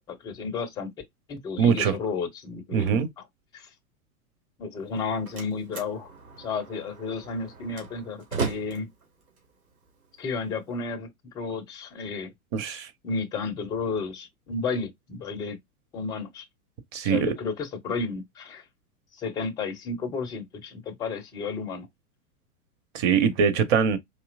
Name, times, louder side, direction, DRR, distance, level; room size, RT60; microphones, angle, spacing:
voice 1, 0.1-0.9 1.3-3.0 3.5-3.7 4.6-6.1 6.4-8.9 10.2-11.1 11.3-12.3 13.0-15.6 15.9-16.4 17.0-18.6 19.1-21.9, left 4 dB, 10° left, 0.4 m, -32 dB
voice 2, 1.6-1.9 2.7-3.1 12.5-12.9 16.9-17.3 22.9-24.0, right 7 dB, 30° right, 0.7 m, -22 dB
Slam, 4.8-10.8, right 5 dB, 70° right, 1.9 m, -38 dB
4.4 x 2.8 x 2.3 m
figure-of-eight pair, 100°, 44 cm